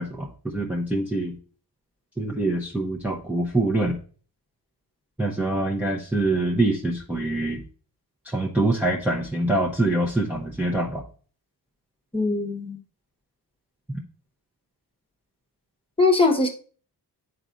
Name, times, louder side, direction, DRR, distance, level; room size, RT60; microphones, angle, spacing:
voice 1, 0.0-1.3 2.2-4.0 5.2-7.6 8.3-11.0, right 2 dB, 5° right, -3 dB, 0.7 m, -25 dB
voice 2, 12.1-12.8 16.0-16.5, left 3 dB, 15° left, 3 dB, 1.0 m, -21 dB
10.5 x 4.1 x 2.5 m, 0.41 s
wide cardioid pair, 115°, 41 cm